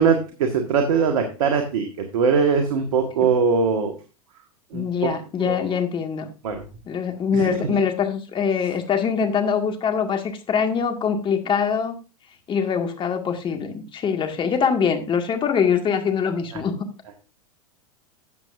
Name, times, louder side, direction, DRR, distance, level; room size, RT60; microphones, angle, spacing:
voice 1, 0.0-3.9 4.7-5.7 6.4-6.6 7.3-7.8, right 5 dB, 65° right, 5 dB, 1.7 m, -22 dB
voice 2, 4.7-6.3 6.9-11.9 12.5-16.9, left 6 dB, 25° left, 5 dB, 1.9 m, -23 dB
13.0 x 7.9 x 2.6 m, 0.33 s
hypercardioid pair, 95°, 19 cm